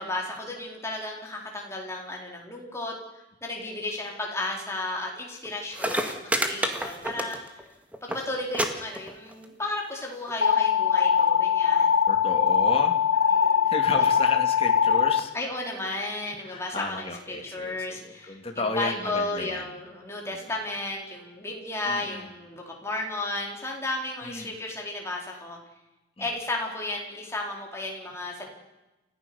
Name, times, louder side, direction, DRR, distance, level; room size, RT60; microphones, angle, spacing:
voice 1, 0.0-2.9 3.4-7.4 8.0-11.9 13.3-13.7 15.3-25.6 26.2-28.5, left 2 dB, 15° left, -1 dB, 4.3 m, -33 dB
sound 1, 5.4-5.5 5.7-7.7 7.9-8.2 8.5-8.7 8.9-9.4 10.3-10.4, right 1 dB, 10° right, 1.8 m, -28 dB
sound 2, 10.4-15.2, left 7 dB, 60° left, 1.1 m, -21 dB
voice 2, 12.1-13.0 13.6-15.3 16.4-19.7 20.2-20.4 21.9-22.3 24.2-24.5 26.2-26.3, left 2 dB, 30° left, 3 dB, 2.3 m, -33 dB
29.5 x 14.5 x 7.1 m, 1.0 s
head